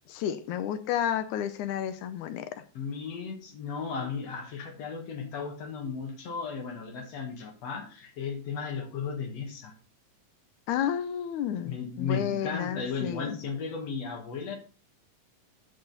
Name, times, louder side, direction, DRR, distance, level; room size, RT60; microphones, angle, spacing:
voice 1, 0.1-2.6 10.7-13.4, left 10 dB, 80° left, 11 dB, 1.8 m, -31 dB
voice 2, 2.8-9.7 11.6-14.6, left 5 dB, 55° left, 4 dB, 2.1 m, -35 dB
14.5 x 4.8 x 4.0 m, 0.37 s
omnidirectional pair, 4.1 m